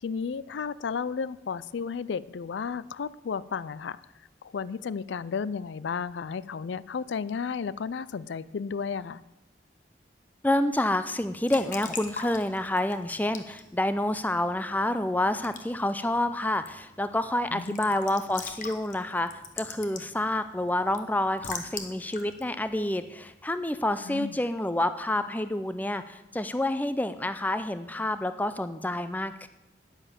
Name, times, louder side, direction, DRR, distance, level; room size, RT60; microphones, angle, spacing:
voice 1, 0.0-4.0 4.4-9.2 17.5-17.8 24.0-24.4, left 6 dB, 80° left, 19 dB, 0.4 m, -33 dB
voice 2, 10.4-19.3 19.6-29.5, left 1 dB, 10° left, 11 dB, 0.5 m, -28 dB
Raindrop / Drip / Trickle dribble, 11.2-23.7, left 5 dB, 45° left, 1.3 m, -44 dB
10.0 x 10.0 x 7.3 m, 0.93 s
head